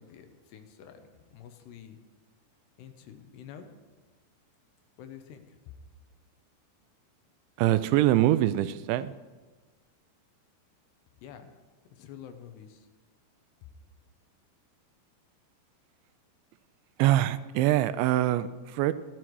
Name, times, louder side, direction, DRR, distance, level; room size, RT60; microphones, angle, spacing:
voice 1, 0.0-2.0 2.8-3.7 5.0-5.7 11.2-11.6 11.9-12.9, left 8 dB, 75° left, 7 dB, 2.9 m, -48 dB
voice 2, 7.6-9.1 17.0-18.9, right 14 dB, 85° right, 14 dB, 2.9 m, -24 dB
16.0 x 13.0 x 4.7 m, 1.3 s
omnidirectional pair, 5.2 m